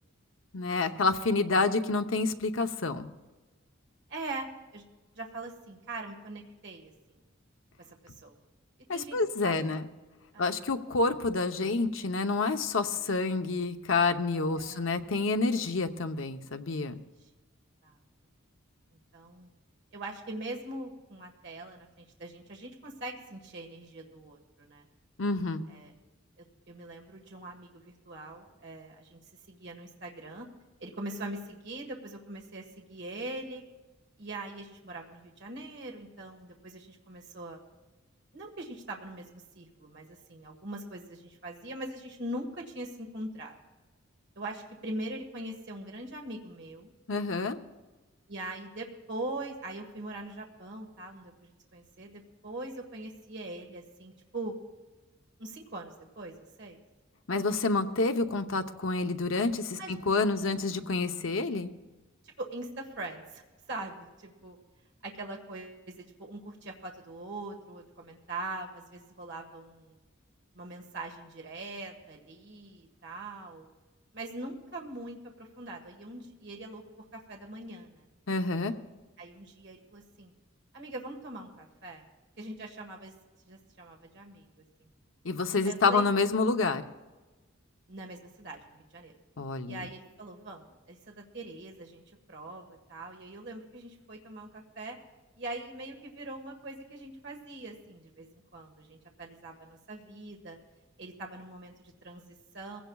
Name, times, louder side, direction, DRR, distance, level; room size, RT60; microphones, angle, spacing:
voice 1, 0.5-3.1 8.9-9.8 10.4-17.0 25.2-25.6 47.1-47.6 57.3-61.7 78.3-78.7 85.2-86.8 89.4-89.9, left 3 dB, 75° left, 7 dB, 0.8 m, -28 dB
voice 2, 4.1-4.8 5.1-7.2 8.0-8.4 8.9-9.2 9.4-9.6 10.3-10.5 14.5-14.9 16.7-16.9 17.2-17.3 17.8-18.0 19.1-19.5 19.9-24.8 25.7-25.9 26.4-29.2 29.5-30.5 30.8-33.6 34.2-37.6 38.3-43.6 44.4-46.9 48.3-54.5 55.4-56.8 59.8-60.1 60.5-60.7 62.2-64.6 65.0-70.0 70.5-73.7 74.1-76.8 77.1-78.1 79.2-80.3 80.7-82.0 82.4-83.1 83.5-84.5 84.8-84.9 85.6-86.1 87.9-89.1 89.7-92.0 92.3-95.0 95.4-100.6 101.0-102.8, right 2 dB, 60° right, 1 dB, 1.6 m, -42 dB
21.0 x 16.0 x 2.4 m, 1.2 s
head